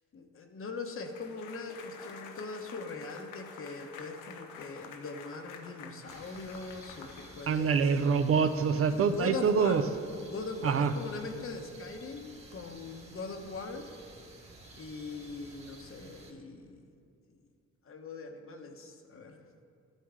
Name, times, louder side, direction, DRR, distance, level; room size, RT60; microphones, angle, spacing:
voice 1, 0.1-7.8 8.9-9.8 10.2-13.9 14.8-16.8 17.8-19.6, left 3 dB, 45° left, 5 dB, 1.1 m, -41 dB
sound 1, 1.0-7.8, left 6 dB, 90° left, 1.0 m, -49 dB
sound 2, 6.1-16.3, right 2 dB, 20° right, 1.6 m, -53 dB
voice 2, 7.5-9.8 10.6-10.9, right 6 dB, 50° right, 10 dB, 0.6 m, -25 dB
13.0 x 9.1 x 3.8 m, 2.4 s
cardioid pair, 90°, 30 cm